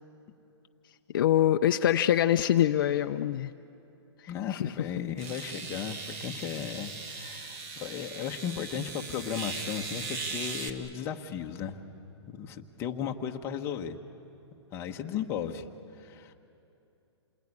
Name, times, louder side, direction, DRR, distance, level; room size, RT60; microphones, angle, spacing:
voice 1, 1.1-3.5 4.5-4.7, left 11 dB, 45° left, 7 dB, 0.6 m, -24 dB
voice 2, 4.3-11.8 12.3-14.0 14.7-15.7 16.0-16.3, left 8 dB, 15° left, 3 dB, 1.0 m, -35 dB
sound 1, 4.3-4.4 5.2-10.7, right 4 dB, 35° right, 1.7 m, -39 dB
28.0 x 21.0 x 9.7 m, 2.8 s
hypercardioid pair, 160°, 15 cm